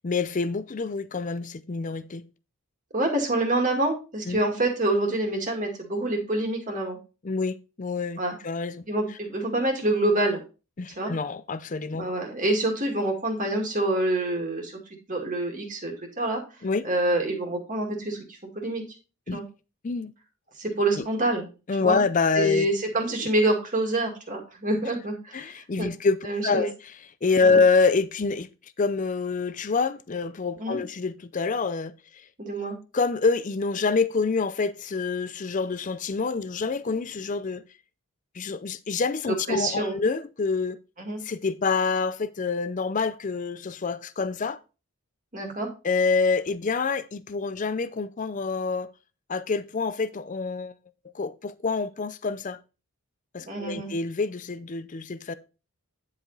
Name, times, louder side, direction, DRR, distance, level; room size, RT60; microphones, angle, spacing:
voice 1, 0.0-2.2 4.3-4.4 7.2-8.8 10.8-12.1 16.6-16.8 19.3-19.4 19.8-20.1 21.0-21.1 21.7-22.7 25.3-26.9 27.2-28.5 28.8-31.9 32.9-37.6 38.4-40.8 41.2-44.6 45.8-48.9 49.3-50.8 51.1-52.6 53.3-55.3, left 4 dB, 35° left, 0.4 m, -26 dB
voice 2, 2.9-7.0 8.2-8.3 8.9-10.4 11.0-11.1 12.0-14.7 15.1-16.4 16.8-18.2 18.5-18.8 19.3-19.4 20.6-21.5 21.8-22.0 22.4-25.5 25.8-25.9 26.2-26.7 27.4-27.6 30.6-30.8 32.4-32.8 39.3-40.0 41.0-41.2 45.3-45.7 53.5-53.9, right 1 dB, 35° right, 2.1 m, -26 dB
10.0 x 4.9 x 4.0 m
head